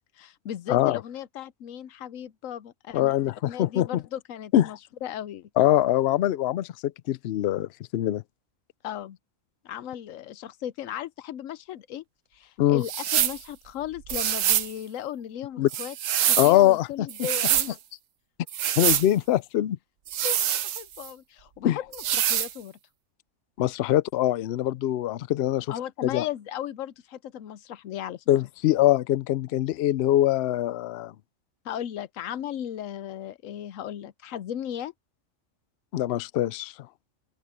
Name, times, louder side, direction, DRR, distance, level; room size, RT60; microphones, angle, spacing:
voice 1, 0.2-3.2 3.5-5.5 8.8-9.2 9.6-12.0 12.3-15.9 16.3-17.7 20.2-20.5 20.8-22.8 25.7-28.2 31.6-34.9, left 10 dB, 90° left, 1.1 m, -36 dB
voice 2, 2.9-4.0 4.5-4.7 5.6-8.2 12.6-12.8 15.6-15.7 16.4-17.1 18.8-19.8 21.6-21.8 23.6-25.7 26.0-26.2 28.3-31.1 35.9-36.7, left 13 dB, 65° left, 0.7 m, -23 dB
sound 1, 12.8-13.4 14.1-14.7 15.7-16.6 17.1-17.7 18.5-19.1 20.1-21.1 21.9-22.5, right 10 dB, 80° right, 1.1 m, -25 dB
open air
omnidirectional pair, 1.3 m